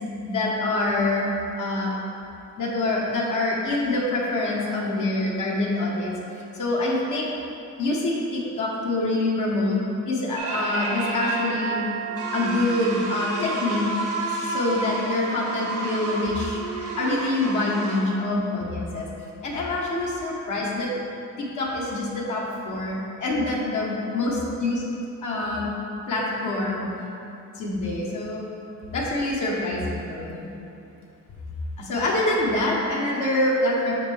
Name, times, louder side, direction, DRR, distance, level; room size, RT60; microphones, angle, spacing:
voice 1, 0.2-1.3 1.6-1.9 2.6-6.2 6.5-7.3 7.8-9.8 10.1-11.9 12.3-14.0 14.3-16.6 17.0-19.1 19.4-20.9 21.4-24.8 25.2-25.7 26.1-26.9 27.5-28.5 28.9-30.4 31.8-33.9, left 2 dB, 80° left, -4 dB, 1.1 m, -25 dB
sound 1, 10.4-18.0, right 3 dB, 85° right, 1.1 m, -30 dB
6.0 x 5.0 x 3.5 m, 2.8 s
cardioid pair, 100°, 30 cm